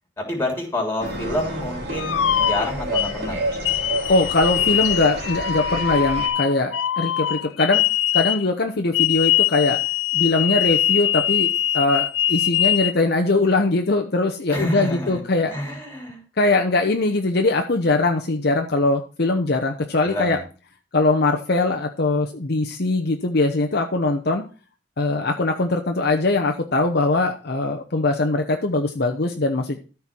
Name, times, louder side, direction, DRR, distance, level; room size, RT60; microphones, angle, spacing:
voice 1, 0.2-3.5 14.5-15.2 15.5-16.2 20.0-20.4, left 1 dB, 10° left, 1 dB, 3.2 m, -28 dB
sound 1, 1.0-6.3, right 1 dB, 55° right, 3.0 m, -29 dB
sound 2, 2.0-3.1 3.6-8.5 8.9-12.9, left 11 dB, 80° left, 0.5 m, -22 dB
voice 2, 4.1-7.8 8.1-9.8 10.1-11.5 11.7-15.5 16.4-20.4 20.9-24.4 25.0-29.8, left 2 dB, 55° left, 4 dB, 0.9 m, -21 dB
13.5 x 4.6 x 5.8 m, 0.36 s
head